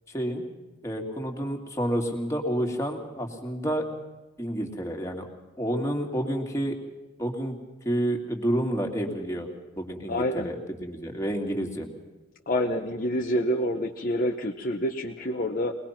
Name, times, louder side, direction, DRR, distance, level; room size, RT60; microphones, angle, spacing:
voice 1, 0.1-0.4 0.8-3.8 4.4-5.2 5.6-6.7 7.2-7.5 7.8-9.5 9.8-11.9, equal, 15° left, 1 dB, 2.3 m, -29 dB
voice 2, 10.1-10.5 12.5-15.7, equal, 40° left, 3 dB, 0.9 m, -27 dB
23.0 x 20.0 x 5.9 m, 1.2 s
head